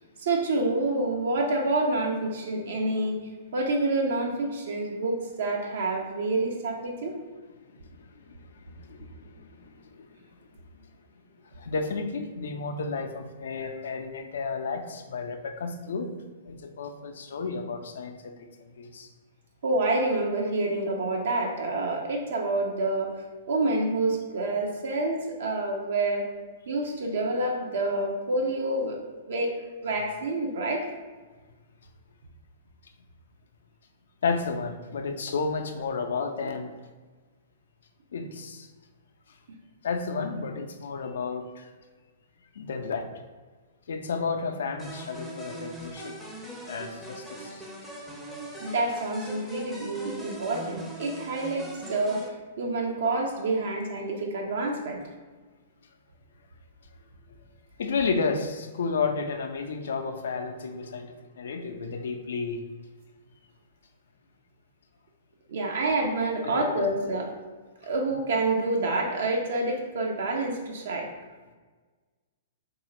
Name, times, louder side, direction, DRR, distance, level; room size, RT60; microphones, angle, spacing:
voice 1, 0.2-3.2 3.5-7.2 13.6-13.7 19.6-26.3 26.7-29.0 29.3-29.5 29.8-30.9 48.6-55.0 65.5-67.3 67.8-71.1, right 2 dB, 65° right, 1 dB, 0.4 m, -28 dB
voice 2, 7.7-10.2 11.5-16.1 16.4-19.1 34.2-36.7 38.1-38.7 39.3-39.4 39.8-41.7 42.5-43.1 43.9-46.2 46.7-47.6 57.8-62.6 66.4-66.9, left 4 dB, 70° left, 6 dB, 0.3 m, -32 dB
sound 1, 44.8-52.3, equal, 5° right, 0.5 m, -41 dB
3.0 x 2.4 x 2.9 m, 1.4 s
figure-of-eight pair, 115°, 0 cm